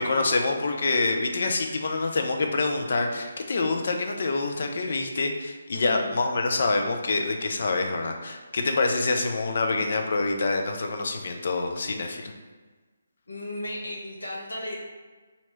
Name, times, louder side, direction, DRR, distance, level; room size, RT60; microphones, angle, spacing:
voice 1, 0.0-12.3, left 3 dB, 55° left, 4 dB, 0.5 m, -26 dB
voice 2, 5.7-6.2 13.3-14.8, left 1 dB, 75° left, -4 dB, 1.1 m, -36 dB
2.9 x 2.8 x 4.5 m, 1.3 s
figure-of-eight pair, 145°, 0 cm